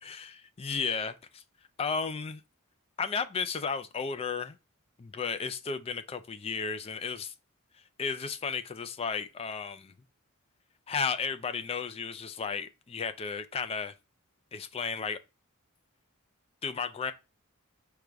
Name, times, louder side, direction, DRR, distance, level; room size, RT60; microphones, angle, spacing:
voice 1, 0.0-1.4 1.8-2.4 3.0-4.6 5.0-7.3 8.0-9.9 10.9-13.9 14.5-15.2 16.6-17.1, left 5 dB, 25° left, 0.4 m, -34 dB
4.8 x 2.3 x 3.7 m
head